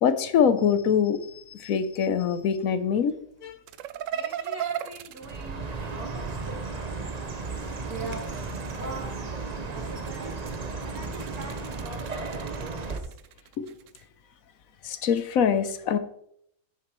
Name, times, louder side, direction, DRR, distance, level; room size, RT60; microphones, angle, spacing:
voice 1, 0.0-3.6 13.6-13.7 14.8-16.0, left 7 dB, 70° left, 11 dB, 1.1 m, -24 dB
sound 1, 3.7-6.4 7.7-9.2 9.8-14.0, right 10 dB, 70° right, 0.9 m, -38 dB
voice 2, 4.1-7.0 7.8-8.4 8.8-9.1 9.6-10.3 10.8-13.1, right 2 dB, 85° right, -1 dB, 3.0 m, -42 dB
Chirp tweet, 5.2-13.0, right 4 dB, 35° right, 0.8 m, -34 dB
10.5 x 8.7 x 3.1 m, 0.69 s
omnidirectional pair, 1.5 m